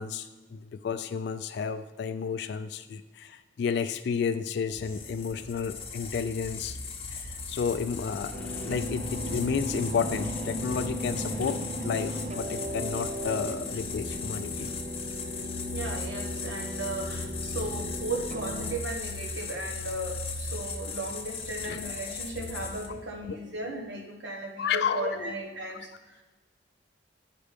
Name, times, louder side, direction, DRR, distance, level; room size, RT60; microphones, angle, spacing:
voice 1, 0.0-6.8 7.1-14.7 21.6-21.9 23.3-23.4 24.6-25.4, left 6 dB, 65° left, 10 dB, 0.3 m, -32 dB
sound 1, 4.7-23.1, left 4 dB, 35° left, 0.9 m, -37 dB
sound 2, 6.4-16.0, equal, 5° left, 0.6 m, -44 dB
sound 3, 8.3-18.8, equal, 40° right, 0.4 m, -37 dB
voice 2, 15.7-25.9, right 2 dB, 85° right, 3 dB, 1.2 m, -36 dB
8.2 x 5.1 x 5.0 m, 1.2 s
head